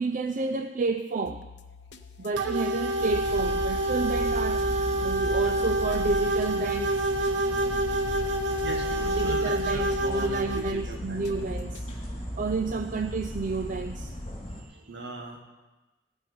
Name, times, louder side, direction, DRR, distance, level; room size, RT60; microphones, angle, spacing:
voice 1, 0.0-1.5 2.2-7.0 9.2-11.9 12.4-14.1 14.6-15.0, right 3 dB, 45° right, 7 dB, 0.5 m, -30 dB
sound 1, 1.3-11.9, left 4 dB, 65° left, 0.8 m, -46 dB
sound 2, 2.4-10.7, right 1 dB, 90° right, 1.0 m, -27 dB
sound 3, 3.0-14.6, equal, 35° left, 3.0 m, -36 dB
voice 2, 8.6-11.2 14.7-15.4, right 1 dB, 70° right, 1 dB, 2.1 m, -39 dB
15.0 x 5.6 x 9.5 m, 1.1 s
head